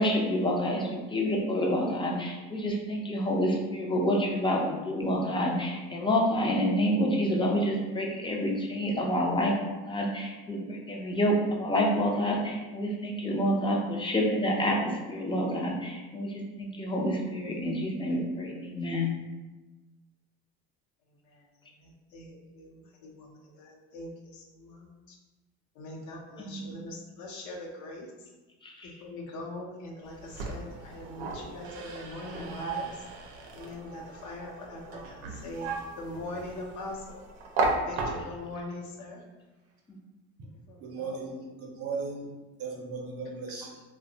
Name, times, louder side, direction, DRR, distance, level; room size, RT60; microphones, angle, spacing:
voice 1, 0.0-19.1 26.4-26.7 28.6-28.9, equal, 15° left, -1 dB, 0.5 m, -28 dB
voice 2, 21.2-25.2 25.7-28.3 29.0-33.0 33.5-35.7 36.0-37.2 37.8-39.2 40.7-41.2, left 2 dB, 65° left, -1 dB, 0.7 m, -42 dB
sound 1, 30.0-38.6, right 3 dB, 85° right, 0.6 m, -35 dB
voice 3, 40.8-43.8, right 4 dB, 50° right, 0 dB, 0.6 m, -37 dB
2.6 x 2.1 x 2.7 m, 1.2 s
supercardioid pair, 100°, 32 cm